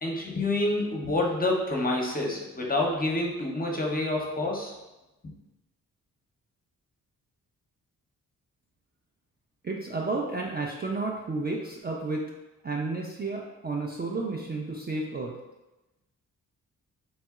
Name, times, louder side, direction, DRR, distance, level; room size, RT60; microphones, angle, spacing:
voice 1, 0.0-4.7, left 2 dB, 25° left, -1 dB, 0.7 m, -28 dB
voice 2, 9.6-12.3 12.6-15.4, right 3 dB, 25° right, -1 dB, 0.4 m, -32 dB
3.0 x 2.6 x 2.3 m, 1.0 s
supercardioid pair, 45°, 38 cm